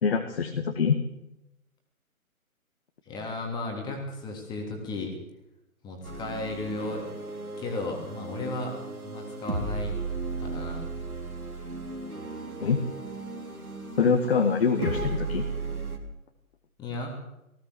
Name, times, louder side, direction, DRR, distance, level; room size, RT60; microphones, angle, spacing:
voice 1, 0.0-1.0 12.6-12.8 14.0-15.5, left 6 dB, 45° left, 4 dB, 2.1 m, -24 dB
voice 2, 3.1-5.1 5.8-7.0 7.6-10.0 10.4-10.8 16.8-17.2, left 2 dB, 10° left, 2 dB, 3.0 m, -35 dB
sound 1, 6.0-16.0, right 3 dB, 85° right, 4.1 m, -35 dB
19.5 x 16.5 x 8.1 m, 0.89 s
figure-of-eight pair, 140°, 43 cm